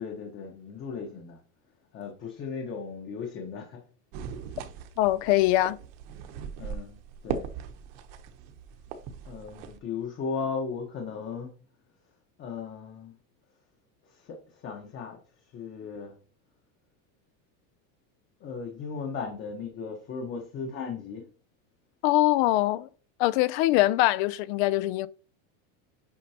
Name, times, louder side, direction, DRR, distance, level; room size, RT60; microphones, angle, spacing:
voice 1, 0.0-1.4 1.9-3.8 6.6-7.0 7.2-7.5 9.2-11.5 12.4-13.2 14.0-16.1 18.4-21.2, left 5 dB, 30° left, 1.2 m, -36 dB
sound 1, 4.1-9.8, right 7 dB, 50° right, 1.1 m, -39 dB
voice 2, 5.0-5.8 22.0-22.9 23.2-25.1, left 16 dB, 55° left, 0.5 m, -23 dB
8.5 x 5.3 x 2.9 m
cardioid pair, 165°, 40 cm